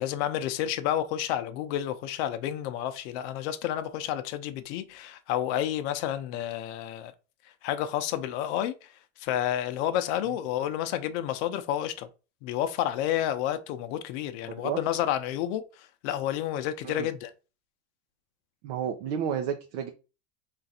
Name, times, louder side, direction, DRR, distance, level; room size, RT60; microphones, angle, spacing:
voice 1, 0.0-7.1 7.6-8.9 9.2-12.1 12.4-17.3, left 11 dB, 60° left, 0.6 m, -30 dB
voice 2, 14.4-14.8 16.8-17.1 18.6-19.9, right 8 dB, 60° right, 0.7 m, -31 dB
3.8 x 2.5 x 4.1 m
supercardioid pair, 130°, 38 cm